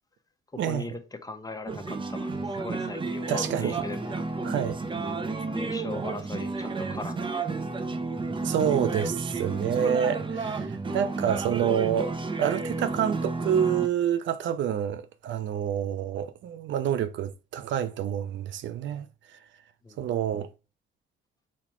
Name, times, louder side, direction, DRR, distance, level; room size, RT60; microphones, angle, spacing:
voice 1, 0.6-4.2 5.5-7.5 19.8-20.1, left 3 dB, 20° left, 0.9 m, -39 dB
sound 1, 1.7-13.9, right 3 dB, 25° right, 0.6 m, -31 dB
voice 2, 3.3-3.8 4.4-4.8 8.4-19.1 20.0-20.5, right 9 dB, 70° right, 0.5 m, -28 dB
4.2 x 4.2 x 2.9 m
cardioid pair, 90°, 20 cm